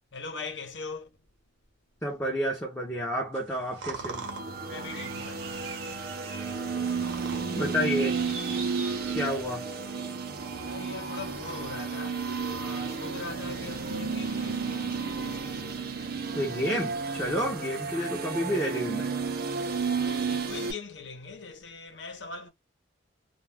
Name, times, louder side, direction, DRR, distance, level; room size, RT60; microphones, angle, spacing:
voice 1, 0.1-1.2 4.7-5.5 10.6-15.7 19.7-22.5, left 4 dB, 70° left, 0.9 m, -41 dB
voice 2, 2.0-4.2 7.5-8.2 9.1-9.6 16.3-19.1, equal, 10° left, 0.6 m, -30 dB
sound 1, 3.3-9.5, right 5 dB, 80° right, 0.8 m, -42 dB
sound 2, 3.8-20.7, right 5 dB, 55° right, 0.6 m, -32 dB
2.3 x 2.2 x 3.3 m
head